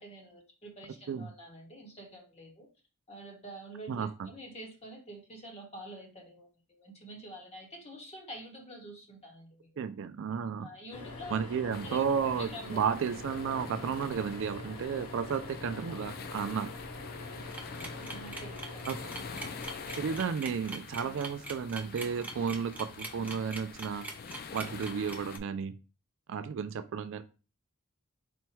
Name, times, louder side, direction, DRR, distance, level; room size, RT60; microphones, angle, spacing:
voice 1, 0.0-2.7 3.1-9.8 10.6-11.4 11.6-12.0 12.4-12.8 17.3-17.5 18.0-19.4, right 1 dB, 30° left, 1 dB, 1.1 m, -47 dB
voice 2, 3.9-4.3 9.8-10.7 11.3-16.7 18.9-19.0 20.0-24.1 24.5-25.7 26.3-27.2, right 6 dB, 60° right, 11 dB, 0.3 m, -33 dB
sound 1, 10.9-20.2, left 2 dB, 90° left, 0.7 m, -44 dB
sound 2, 11.7-25.4, left 6 dB, 45° left, 0.4 m, -47 dB
sound 3, 17.5-25.4, right 2 dB, 5° right, 0.5 m, -42 dB
4.3 x 2.2 x 4.4 m, 0.33 s
head